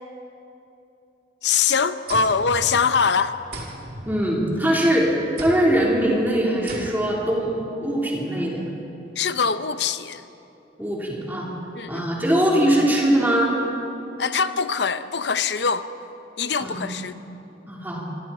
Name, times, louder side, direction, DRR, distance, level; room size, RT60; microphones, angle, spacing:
voice 1, 1.4-3.3 9.2-10.2 11.8-12.1 14.2-15.8 16.4-17.1, left 5 dB, 80° left, 11 dB, 0.8 m, -23 dB
sound 1, 2.1-3.1 3.5-4.8 5.4-5.9 6.7-7.3, right 1 dB, 55° right, 2.5 m, -36 dB
voice 2, 4.1-5.1 5.4-7.5 7.8-8.7 10.8-11.5 11.9-13.5 16.6-16.9 17.7-18.0, right 1 dB, 10° right, -4 dB, 3.9 m, -21 dB
26.5 x 23.5 x 4.4 m, 2.9 s
head